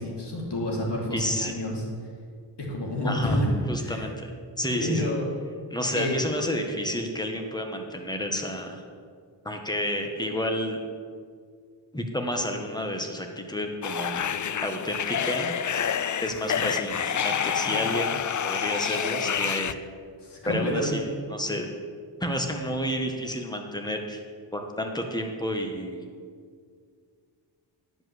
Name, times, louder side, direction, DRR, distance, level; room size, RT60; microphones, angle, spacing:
voice 1, 0.0-1.8 2.6-4.0 4.7-5.3 5.9-6.1 20.2-21.0, left 1 dB, 60° left, -2 dB, 2.8 m, -28 dB
voice 2, 1.1-1.5 3.0-3.4 3.7-5.1 5.7-8.8 9.4-10.8 11.9-14.3 14.6-15.5 16.2-19.7 20.4-21.7 22.2-24.2 24.5-26.0, left 1 dB, 10° left, 3 dB, 1.6 m, -30 dB
sound 1, 13.8-19.7, left 8 dB, 40° left, 0.5 m, -28 dB
10.5 x 5.3 x 7.9 m, 2.1 s
cardioid pair, 65°, 45 cm